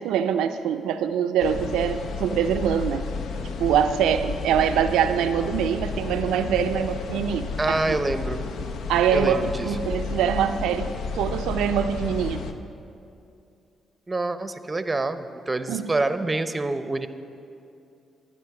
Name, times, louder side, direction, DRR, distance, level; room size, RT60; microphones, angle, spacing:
voice 1, 0.0-3.1 3.6-8.0 8.9-12.4 15.7-15.9, right 8 dB, 90° right, 8 dB, 0.4 m, -24 dB
sound 1, 1.4-12.5, left 4 dB, 75° left, 0.6 m, -32 dB
voice 2, 7.6-8.4 9.1-9.7 14.1-17.1, right 2 dB, 25° right, 11 dB, 0.6 m, -26 dB
12.0 x 9.9 x 4.8 m, 2.6 s
cardioid pair, 75°, 0 cm